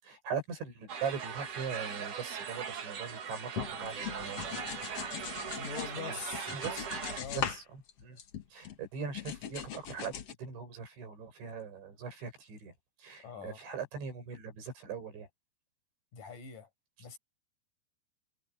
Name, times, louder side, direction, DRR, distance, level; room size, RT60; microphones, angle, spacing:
voice 1, 0.0-4.4 6.0-6.9 7.3-8.2 8.5-12.7 13.0-15.3, right 6 dB, 75° right, 9.6 m, -40 dB
sound 1, 0.9-7.2, right 6 dB, 50° right, 3.5 m, -40 dB
sound 2, 3.6-5.9 6.3-7.6 7.9-8.8 9.1-10.3, left 9 dB, 80° left, 1.3 m, -40 dB
voice 2, 5.6-6.5 7.2-7.5 13.2-13.6 16.1-16.7 17.0-17.2, left 6 dB, 45° left, 8.6 m, -43 dB
omnidirectional pair, 5.3 m